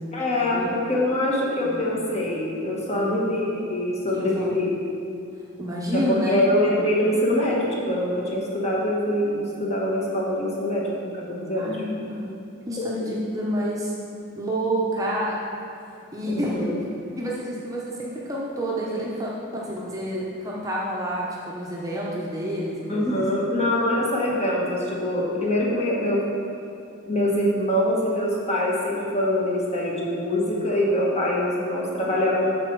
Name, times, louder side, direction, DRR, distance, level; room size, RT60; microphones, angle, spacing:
voice 1, 0.1-4.7 5.9-10.9 11.1-11.8 12.8-13.1 16.2-16.8 22.9-26.3 27.1-32.5, left 1 dB, 30° left, -4 dB, 1.4 m, -24 dB
voice 2, 2.9-3.3 4.1-4.5 5.6-6.3 11.6-12.3 12.7-13.9 14.3-15.4 16.1-16.6 17.2-23.2, equal, 15° right, -5 dB, 0.8 m, -29 dB
12.5 x 4.2 x 4.6 m, 2.7 s
head